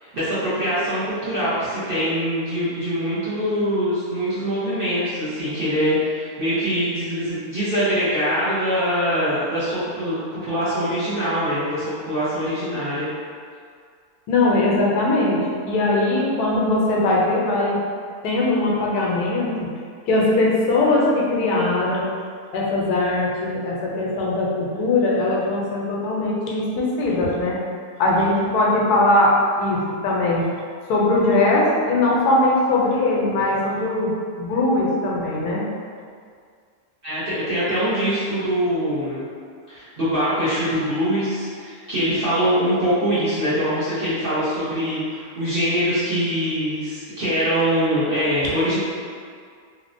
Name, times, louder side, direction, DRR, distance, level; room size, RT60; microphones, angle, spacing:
voice 1, 0.0-13.1 37.0-39.2 39.7-48.8, equal, 45° right, -13 dB, 0.8 m, -23 dB
voice 2, 14.3-17.8 18.2-19.7 20.1-22.1 22.5-27.6 28.0-30.5 30.9-35.6, left 2 dB, 85° left, -4 dB, 1.1 m, -20 dB
3.1 x 2.1 x 2.5 m, 2.1 s
omnidirectional pair, 1.6 m